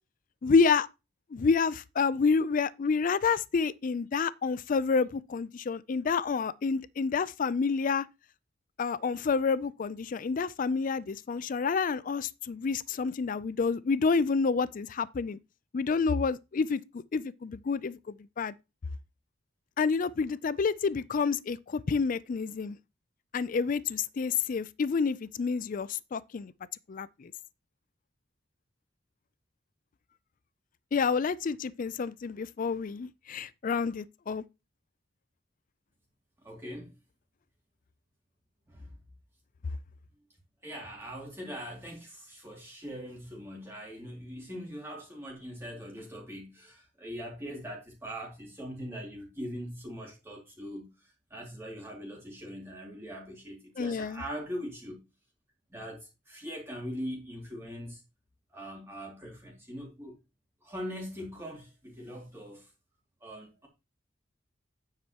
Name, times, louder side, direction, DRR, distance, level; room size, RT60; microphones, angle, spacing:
voice 1, 0.4-0.9 1.3-8.1 8.8-15.4 15.7-16.8 17.1-18.5 19.8-22.8 23.3-26.5 26.9-27.3 30.9-34.4 53.8-54.2, left 5 dB, 45° left, 0.4 m, -29 dB
voice 2, 36.4-36.9 38.7-39.0 40.6-55.0 55.7-58.0 58.5-60.2 60.6-62.7 63.2-63.7, equal, 15° right, 2.5 m, -41 dB
9.3 x 7.4 x 2.9 m
head